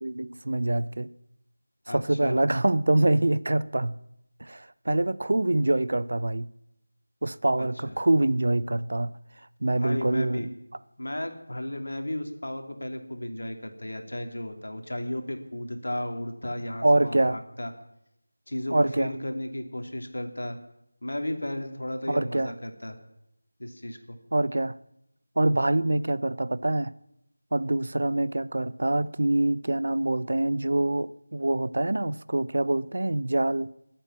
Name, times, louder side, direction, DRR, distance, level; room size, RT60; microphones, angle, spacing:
voice 1, 0.0-1.1 1.9-3.9 4.4-6.5 7.2-9.1 9.6-10.5 16.8-17.4 18.7-19.1 22.1-22.5 24.3-24.7 25.4-26.9 27.5-33.7, right 2 dB, 65° right, 0.7 m, -25 dB
voice 2, 1.9-2.4 7.6-7.9 9.8-10.5 11.0-17.7 18.5-20.6 21.0-23.0 23.6-24.2, left 1 dB, 85° left, 2.8 m, -34 dB
21.5 x 9.0 x 7.4 m
figure-of-eight pair, 175°, 0 cm